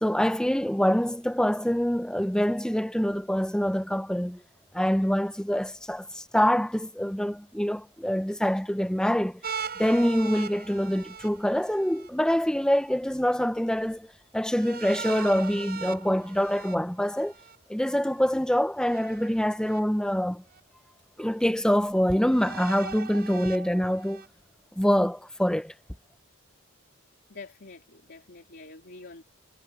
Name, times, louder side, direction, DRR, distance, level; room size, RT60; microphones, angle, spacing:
voice 1, 0.0-4.4 4.7-9.4 9.8-17.3 17.7-20.4 21.2-24.2 24.8-25.7, equal, 5° left, 0.8 m, -25 dB
sound 1, 9.4-12.1 14.5-17.6 18.8-19.8 20.5-20.6 22.3-24.3, right 6 dB, 50° right, 5.7 m, -40 dB
voice 2, 27.3-29.2, left 3 dB, 50° left, 3.4 m, -46 dB
head